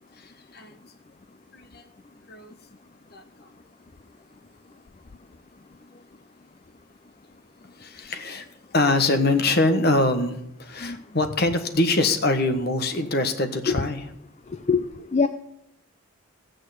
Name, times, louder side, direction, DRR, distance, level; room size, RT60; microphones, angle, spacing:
voice 1, 0.2-0.7 1.5-1.8 2.3-2.5 3.1-3.2 7.8-8.5 8.7-14.0, left 2 dB, 45° left, 7 dB, 1.3 m, -24 dB
voice 2, 10.8-11.0 13.7-13.8 14.7-14.8 15.1-15.3, left 5 dB, 30° left, 10 dB, 0.4 m, -21 dB
15.0 x 6.5 x 8.1 m, 0.81 s
head